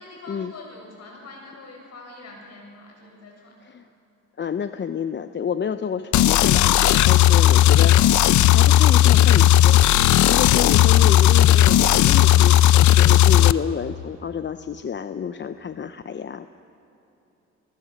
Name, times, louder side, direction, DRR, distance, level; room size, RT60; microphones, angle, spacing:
voice 1, 0.0-3.8, left 2 dB, 55° left, 1 dB, 7.1 m, -44 dB
voice 2, 4.4-9.8 10.3-16.5, left 7 dB, 40° left, 11 dB, 0.7 m, -29 dB
sound 1, 6.1-13.5, left 13 dB, 75° left, 0.6 m, -15 dB
29.5 x 20.0 x 6.6 m, 3.0 s
cardioid pair, 90°, 30 cm